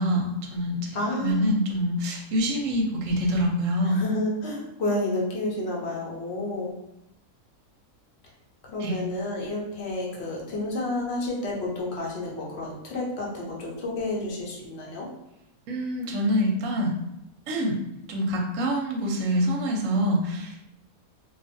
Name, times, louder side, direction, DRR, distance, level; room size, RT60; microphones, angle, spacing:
voice 1, 0.0-4.0 8.8-9.0 15.7-16.9 17.5-17.8 18.1-20.6, equal, 65° right, 0 dB, 0.9 m, -25 dB
voice 2, 0.9-1.4 3.8-6.7 8.7-15.1, left 2 dB, 55° left, -3 dB, 0.8 m, -30 dB
2.6 x 2.4 x 2.5 m, 0.86 s
omnidirectional pair, 1.6 m